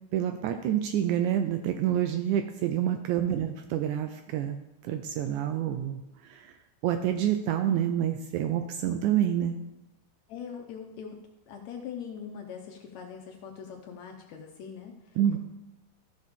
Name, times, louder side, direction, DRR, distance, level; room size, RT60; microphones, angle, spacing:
voice 1, 0.1-4.6 4.8-6.5 6.8-9.6 15.2-15.4, right 10 dB, 80° right, 7 dB, 1.8 m, -28 dB
voice 2, 10.3-11.2 11.5-15.4, left 7 dB, 75° left, 2 dB, 1.7 m, -42 dB
13.5 x 6.5 x 3.6 m, 0.95 s
omnidirectional pair, 3.8 m